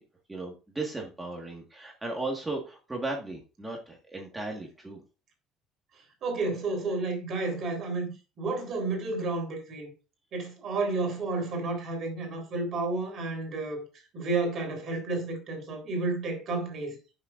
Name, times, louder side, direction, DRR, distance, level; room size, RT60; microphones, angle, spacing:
voice 1, 0.3-5.0, right 2 dB, 10° right, 1.6 m, -36 dB
voice 2, 6.2-8.1 8.4-9.9 10.3-13.8 14.1-16.9, right 3 dB, 40° right, 3.7 m, -31 dB
17.5 x 6.4 x 2.5 m
cardioid pair, 175°, 0 cm